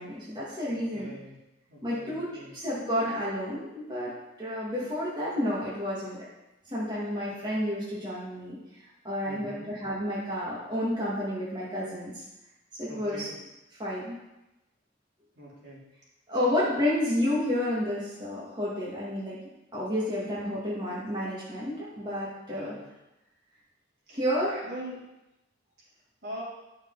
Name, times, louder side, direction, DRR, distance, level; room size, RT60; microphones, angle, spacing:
voice 1, 0.0-1.1 1.8-4.1 4.4-6.2 6.7-8.6 9.0-12.2 12.8-13.3 13.8-14.2 16.3-19.4 19.7-22.7 24.1-24.7, left 1 dB, 25° right, -8 dB, 2.2 m, -30 dB
voice 2, 0.7-1.4 1.7-2.5 9.2-9.7 12.9-13.4 15.3-15.9 22.5-22.9 24.1-24.2 24.6-25.0 26.2-26.4, equal, 60° right, -7 dB, 3.5 m, -43 dB
10.5 x 6.5 x 4.1 m, 0.95 s
head